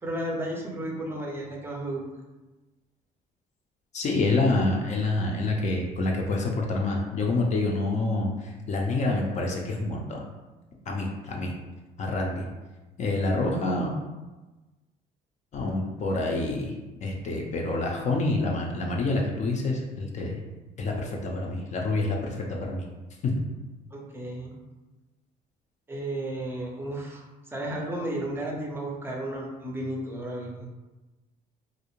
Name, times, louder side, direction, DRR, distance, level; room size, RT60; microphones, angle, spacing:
voice 1, 0.0-2.0 23.9-24.6 25.9-27.2 27.5-30.7, right 1 dB, 15° right, -1 dB, 0.5 m, -33 dB
voice 2, 3.9-10.2 10.9-11.5 12.0-12.4 13.0-13.9 15.5-16.7 17.0-20.4 20.8-22.8 23.2-23.3, left 2 dB, 45° left, 0 dB, 0.5 m, -27 dB
2.5 x 2.0 x 3.0 m, 1.1 s
cardioid pair, 110°, 17 cm